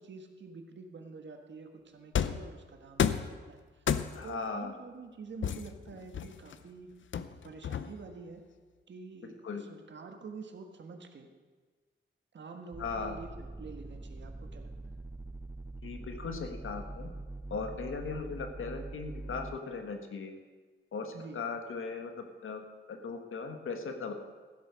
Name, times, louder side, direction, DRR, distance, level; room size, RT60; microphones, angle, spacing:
voice 1, 0.0-3.8 4.2-6.9 7.4-8.4 8.9-11.3 12.3-15.0 21.1-21.4, right 4 dB, 60° right, 5 dB, 1.5 m, -47 dB
sound 1, 2.2-2.5 3.0-3.4 3.9-4.4 5.4-6.6 7.1-8.1, left 8 dB, 70° left, 0.6 m, -31 dB
voice 2, 4.1-4.7 9.2-9.6 12.8-13.2 15.8-17.1 17.5-20.3 20.9-24.1, left 4 dB, 85° left, 5 dB, 1.6 m, -38 dB
sound 2, 12.7-19.6, right 2 dB, 10° right, 0.4 m, -43 dB
15.0 x 8.4 x 6.3 m, 1.4 s
wide cardioid pair, 160°, 20 cm